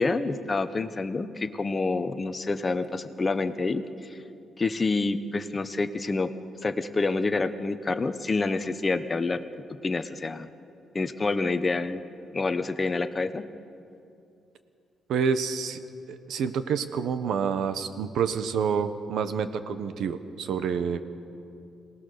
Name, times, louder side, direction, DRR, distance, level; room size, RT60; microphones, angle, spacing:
voice 1, 0.0-3.8 4.1-4.2 4.6-6.3 6.6-9.4 9.8-10.5 10.9-12.0 12.3-13.4, left 3 dB, 20° left, 9 dB, 0.9 m, -27 dB
voice 2, 15.1-15.8 16.1-21.0, right 6 dB, 70° right, 11 dB, 1.2 m, -28 dB
27.0 x 19.0 x 6.8 m, 2.7 s
cardioid pair, 150°, 0 cm